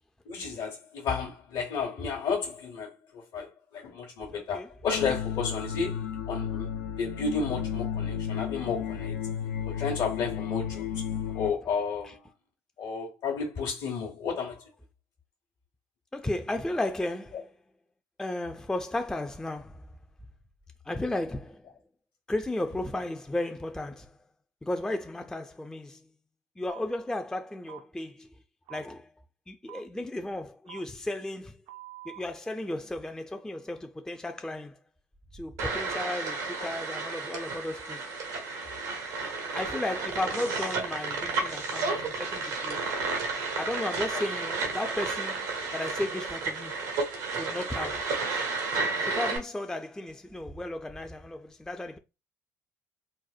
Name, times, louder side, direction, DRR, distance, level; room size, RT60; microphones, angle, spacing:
voice 1, 0.3-6.7 7.0-9.2 9.7-11.0 11.3-12.2 12.8-14.6, left 5 dB, 60° left, 0.9 m, -32 dB
voice 2, 4.3-4.7 11.1-11.4 16.1-17.5 18.2-19.9 20.9-21.7 22.3-24.2 24.6-26.1 26.6-28.3 28.7-29.1 29.5-31.6 32.0-34.8 35.3-38.0 39.5-42.8 43.6-46.8 47.4-48.2 49.0-52.0, left 1 dB, 5° left, 0.4 m, -34 dB
sound 1, 4.9-11.5, left 8 dB, 85° left, 0.4 m, -33 dB
sound 2, 26.7-26.8 27.7-27.8 28.7-28.8 29.7-29.8 30.7-30.8 31.7-32.2, right 15 dB, 65° right, 0.5 m, -45 dB
sound 3, 35.6-49.4, right 3 dB, 85° right, 0.9 m, -32 dB
4.0 x 2.1 x 2.4 m
hypercardioid pair, 60°, 9 cm